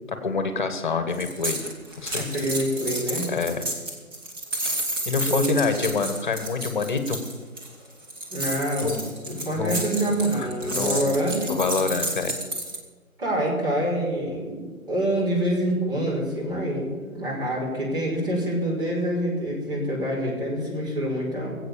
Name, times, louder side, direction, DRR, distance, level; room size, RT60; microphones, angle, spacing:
voice 1, 0.1-1.6 2.0-2.5 3.3-3.6 5.1-7.2 8.8-9.1 9.5-9.8 10.3-11.2 11.5-12.3, left 4 dB, 35° left, 9 dB, 1.3 m, -27 dB
sound 1, 1.1-12.8, right 1 dB, 15° right, 1.5 m, -31 dB
voice 2, 2.2-3.3 5.3-5.6 8.3-8.9 9.5-11.5 13.2-21.5, right 1 dB, 40° right, -4 dB, 5.2 m, -26 dB
20.0 x 8.2 x 7.1 m, 1.4 s
figure-of-eight pair, 145°, 42 cm